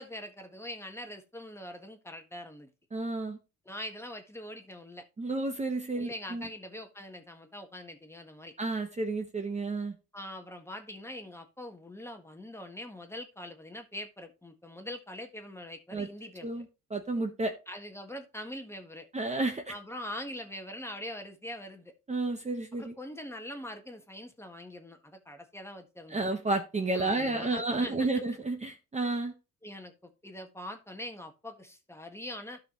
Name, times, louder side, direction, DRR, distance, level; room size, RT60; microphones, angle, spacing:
voice 1, 0.0-2.7 3.6-5.0 5.9-8.5 10.1-16.6 17.7-19.1 19.7-21.9 22.8-26.2 27.0-28.1 29.6-32.6, left 1 dB, 10° left, 5 dB, 1.5 m, -43 dB
voice 2, 2.9-3.4 5.2-6.5 8.6-9.9 15.9-16.1 16.4-17.5 19.1-19.7 22.1-22.9 26.1-29.3, right 2 dB, 20° right, 5 dB, 1.2 m, -31 dB
12.0 x 5.7 x 3.1 m, 0.29 s
cardioid pair, 90°, 32 cm